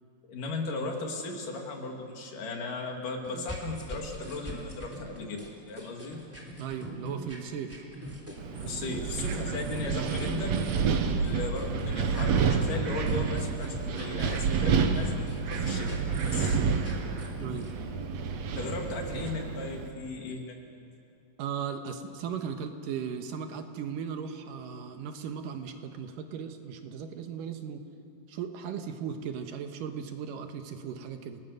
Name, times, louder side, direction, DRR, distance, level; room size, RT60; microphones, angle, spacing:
voice 1, 0.3-6.2 8.6-10.6 11.2-16.6 18.6-20.6, left 3 dB, 70° left, 1 dB, 4.0 m, -36 dB
sound 1, 3.2-17.7, equal, 5° right, 2.9 m, -43 dB
voice 2, 6.6-7.8 17.4-17.7 21.4-27.8 28.3-31.4, right 7 dB, 80° right, 6 dB, 2.8 m, -37 dB
Wind, 8.4-19.9, right 5 dB, 60° right, 2.1 m, -29 dB
29.5 x 19.5 x 6.7 m, 2.7 s
omnidirectional pair, 3.9 m